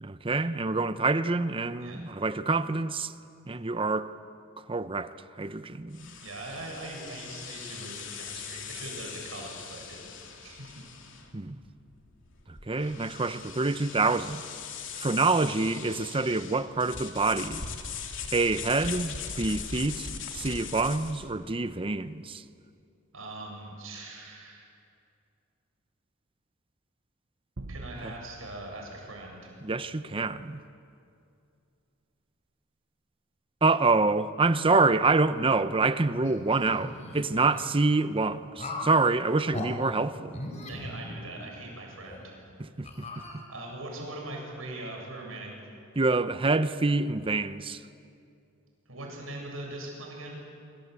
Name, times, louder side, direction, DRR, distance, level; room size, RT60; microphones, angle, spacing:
voice 1, 0.0-3.1 3.5-4.1 4.7-6.2 11.3-11.6 12.5-14.4 15.0-17.6 18.3-22.4 28.0-28.1 29.6-30.6 33.6-40.4 42.6-43.2 46.0-47.8, right 3 dB, 25° right, 0.7 m, -27 dB
sound 1, 5.9-21.3, left 6 dB, 65° left, 3.0 m, -40 dB
voice 2, 6.2-10.1 10.4-10.8 23.1-24.7 27.7-29.5 40.7-42.3 43.5-45.6 48.9-50.4, right 2 dB, 80° right, 7.8 m, -41 dB
sound 2, 27.6-30.1, right 2 dB, 65° right, 1.0 m, -46 dB
sound 3, 36.2-37.7 38.6-39.0 39.5-39.7 40.3-41.6 42.1-42.2 42.8-43.8, left 1 dB, 35° left, 4.3 m, -39 dB
25.5 x 25.0 x 8.3 m
head